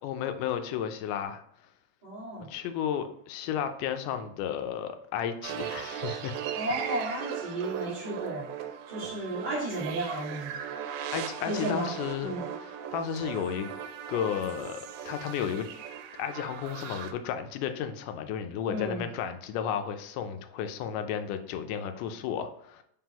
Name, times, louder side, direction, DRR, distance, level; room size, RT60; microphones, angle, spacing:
voice 1, 0.0-1.4 2.5-6.4 11.1-13.7 14.1-14.8 15.1-15.7 16.2-22.8, left 8 dB, 85° left, 8 dB, 2.1 m, -33 dB
voice 2, 2.0-2.5 6.5-8.5 8.9-10.6 11.4-11.9 12.2-12.4 18.7-19.1, right 1 dB, 30° right, -6 dB, 0.9 m, -33 dB
sound 1, 5.4-17.1, right 9 dB, 80° right, 2.0 m, -38 dB
4.9 x 3.7 x 2.9 m, 0.70 s
omnidirectional pair, 3.6 m